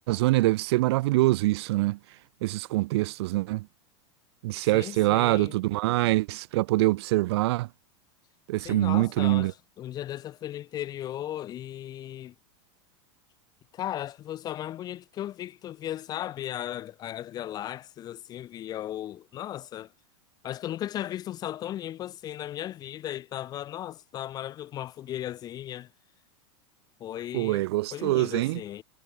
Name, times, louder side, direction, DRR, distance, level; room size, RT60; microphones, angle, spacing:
voice 1, 0.0-2.0 2.4-3.7 4.4-7.7 8.5-9.5 27.3-28.6, right 19 dB, 60° right, 1.3 m, -24 dB
voice 2, 4.6-5.6 8.6-12.3 13.7-19.9 20.4-25.9 27.0-28.8, left 12 dB, 25° left, 4.1 m, -36 dB
supercardioid pair, 165°, 15 cm